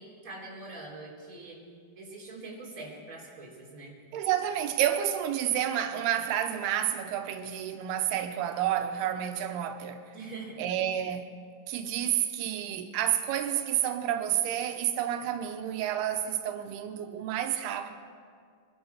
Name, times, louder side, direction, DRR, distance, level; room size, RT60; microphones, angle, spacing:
voice 1, 0.0-1.6 2.0-3.9 10.1-10.6, right 3 dB, 20° right, 3.6 m, -43 dB
voice 2, 4.1-10.0 10.6-11.3 11.7-17.9, right 11 dB, 90° right, 2.8 m, -30 dB
24.0 x 12.0 x 4.7 m
omnidirectional pair, 4.5 m